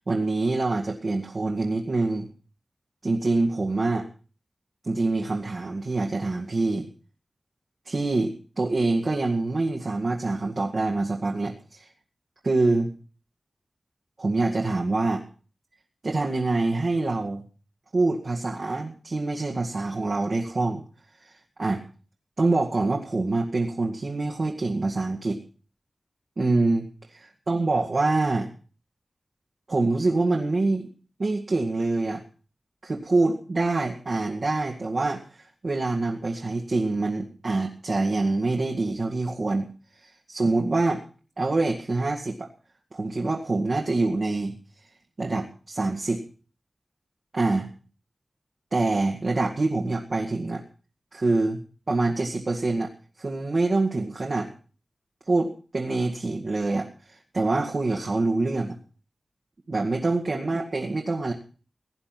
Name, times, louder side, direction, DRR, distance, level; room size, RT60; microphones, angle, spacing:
voice 1, 0.0-2.3 3.0-4.0 4.8-6.9 7.9-11.9 12.4-12.9 14.2-15.2 16.0-17.4 17.9-20.8 21.2-21.8 22.4-25.4 26.4-26.9 27.5-28.5 29.7-30.9 31.2-32.2 32.8-39.7 40.0-41.0 41.4-42.5 42.9-44.6 45.2-46.2 47.3-47.7 48.7-50.6 51.1-52.9 53.2-54.5 55.3-58.8 59.7-61.3, right 2 dB, 60° right, 1 dB, 2.0 m, -25 dB
17.5 x 10.0 x 5.9 m, 0.40 s
wide cardioid pair, 70°, 0 cm